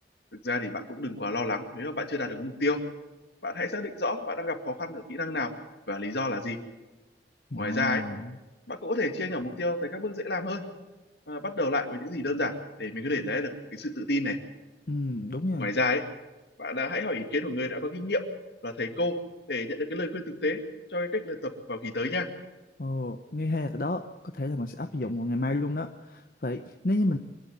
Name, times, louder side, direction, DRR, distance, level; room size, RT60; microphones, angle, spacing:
voice 1, 0.3-2.8 3.4-5.5 5.9-6.6 7.6-8.0 8.7-10.6 11.3-14.4 15.6-16.0 16.6-18.3 18.6-19.2 19.5-20.6 20.9-22.3, left 2 dB, 70° left, 6 dB, 2.2 m, -30 dB
voice 2, 7.5-8.4 14.9-15.7 22.8-24.1 24.3-27.2, left 1 dB, 50° left, 6 dB, 0.9 m, -30 dB
24.5 x 11.5 x 9.5 m, 1.1 s
head